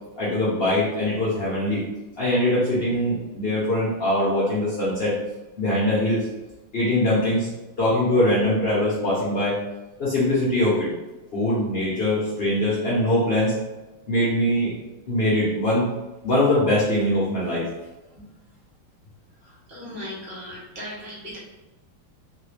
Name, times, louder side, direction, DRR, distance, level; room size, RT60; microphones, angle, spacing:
voice 1, 0.2-1.8 2.2-5.2 5.6-6.3 6.7-7.5 7.8-9.6 10.0-10.9 11.3-13.6 14.1-14.7 15.1-15.9 16.2-17.7, left 1 dB, 75° left, -9 dB, 0.5 m, -22 dB
voice 2, 19.7-21.4, left 1 dB, 40° right, -6 dB, 1.1 m, -37 dB
3.8 x 2.3 x 3.2 m, 1.1 s
omnidirectional pair, 2.4 m